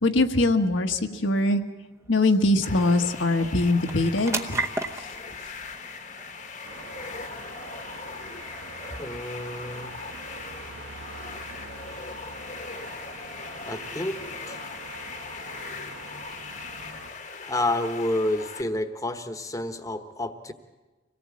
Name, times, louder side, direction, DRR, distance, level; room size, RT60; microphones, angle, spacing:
voice 1, 0.0-1.6 2.1-4.6, left 2 dB, 75° left, 4 dB, 1.5 m, -22 dB
sound 1, 0.9-15.7, right 2 dB, 15° right, 0.8 m, -41 dB
sound 2, 2.6-18.6, left 5 dB, 40° left, 1.2 m, -39 dB
sound 3, 6.6-17.1, right 3 dB, 80° right, 1.7 m, -44 dB
voice 2, 9.0-10.0 13.7-14.2 14.5-14.6 17.4-20.5, left 1 dB, 15° left, 8 dB, 1.2 m, -29 dB
25.5 x 18.0 x 8.5 m, 1.2 s
head